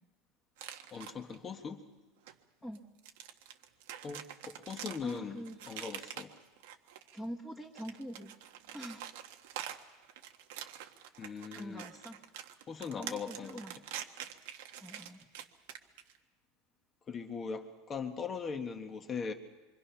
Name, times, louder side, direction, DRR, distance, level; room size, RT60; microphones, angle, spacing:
sound 1, 0.6-1.4 2.3-2.4 2.8-7.3 7.7-16.2, right 10 dB, 75° right, 1.5 m, -46 dB
voice 1, 0.9-1.8 4.0-6.3 11.2-11.8 12.7-13.6 17.1-19.3, left 5 dB, 20° left, 6 dB, 1.4 m, -40 dB
voice 2, 5.0-5.8 7.1-8.3 8.7-9.1 11.5-12.2 13.0-13.7 14.8-15.3, equal, ahead, -5 dB, 1.6 m, -45 dB
26.0 x 24.5 x 5.8 m, 1.2 s
supercardioid pair, 175°, 0 cm